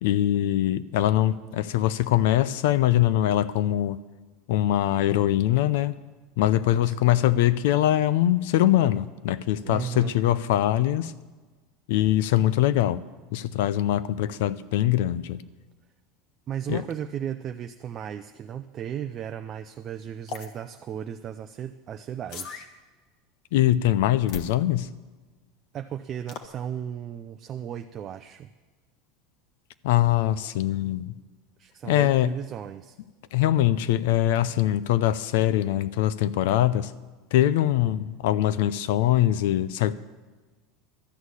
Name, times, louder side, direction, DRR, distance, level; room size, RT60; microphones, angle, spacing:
voice 1, 0.0-4.0 4.5-5.9 6.4-11.1 11.9-13.0 13.3-15.4 16.7-16.8 23.5-24.9 29.8-31.1 31.8-32.3 33.3-36.9 37.3-39.9, left 13 dB, 75° left, 16 dB, 0.5 m, -22 dB
voice 2, 9.6-10.2 16.5-22.7 25.7-28.5 31.6-33.0, right 9 dB, 30° right, 7 dB, 0.5 m, -35 dB
sound 1, 20.3-20.5 22.3-22.7 24.3-24.5 26.3-26.5, left 5 dB, 50° left, 1.2 m, -37 dB
12.5 x 6.4 x 9.7 m, 1.3 s
supercardioid pair, 145°, 0 cm